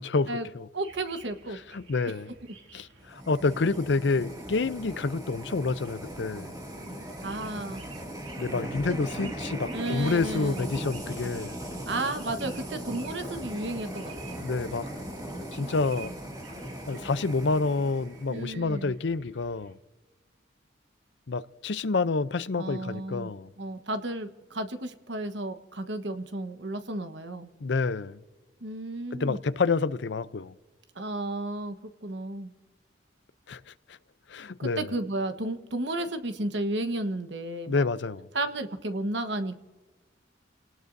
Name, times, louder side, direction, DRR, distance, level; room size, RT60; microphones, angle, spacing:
voice 1, 0.0-0.7 1.7-2.3 2.7-6.5 8.4-11.6 14.4-14.9 15.5-16.1 16.9-19.8 21.3-23.5 27.6-28.2 29.1-30.5 33.5-33.6 34.3-34.9 37.7-38.3, left 3 dB, 70° left, 0.6 m, -28 dB
voice 2, 0.7-1.6 7.2-7.9 8.9-9.0 9.7-10.7 11.9-14.4 18.3-18.9 22.6-23.3 23.6-27.5 28.6-29.4 30.9-31.8 32.0-32.5 34.6-37.9 38.3-39.6, right 2 dB, 70° right, 1.3 m, -33 dB
sound 1, 0.8-19.7, right 5 dB, 85° right, 2.5 m, -53 dB
sound 2, 3.0-18.4, right 1 dB, 20° right, 2.3 m, -38 dB
sound 3, 9.2-9.6 10.0-10.4 10.8-11.2 11.6-12.0 12.4-12.8 13.2-13.6 14.0-14.4 14.9-15.2 15.7-16.0 16.5-16.6, left 1 dB, 45° left, 1.8 m, -52 dB
29.0 x 18.5 x 2.7 m
head